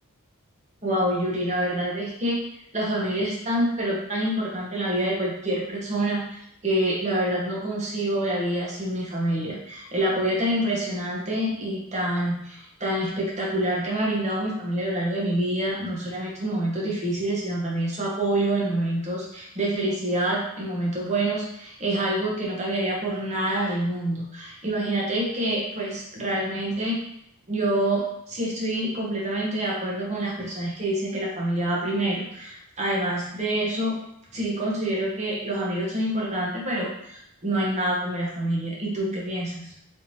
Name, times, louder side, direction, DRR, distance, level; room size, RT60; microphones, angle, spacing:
voice 1, 0.8-2.4 2.7-27.0 27.5-34.0 34.3-39.7, right 1 dB, 30° right, -3 dB, 0.9 m, -27 dB
3.5 x 3.0 x 2.7 m, 0.78 s
head